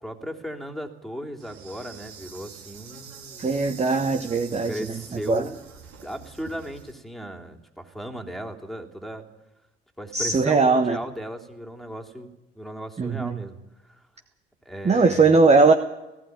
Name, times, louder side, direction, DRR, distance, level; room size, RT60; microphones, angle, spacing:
voice 1, 0.0-3.5 4.6-5.6 6.0-9.2 10.0-13.6 13.8-14.1 14.6-15.4, equal, ahead, 4 dB, 3.2 m, -36 dB
Insect, 1.4-6.9, right 6 dB, 60° right, 4.0 m, -45 dB
voice 2, 3.4-4.7 5.1-5.4 10.1-11.0 13.0-13.4 14.8-15.7, right 4 dB, 20° right, 7 dB, 1.3 m, -19 dB
19.0 x 15.0 x 9.4 m, 1.0 s
figure-of-eight pair, 55°, 33 cm